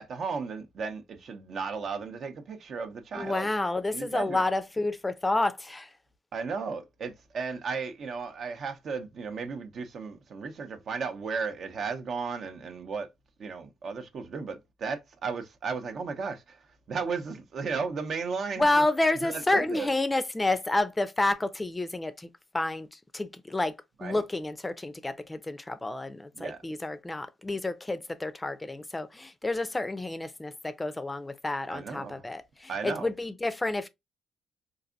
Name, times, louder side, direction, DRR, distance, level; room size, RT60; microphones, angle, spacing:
voice 1, 0.0-3.5 3.9-4.4 6.3-13.1 13.4-16.6 16.9-18.8 19.2-19.9 24.0-24.2 26.3-26.6 31.7-32.2 32.7-33.1, right 5 dB, 60° right, 0.7 m, -35 dB
voice 2, 3.1-5.9 18.6-23.8 24.0-33.9, left 2 dB, 15° left, 0.5 m, -29 dB
4.0 x 2.6 x 2.4 m
cardioid pair, 90°, 0 cm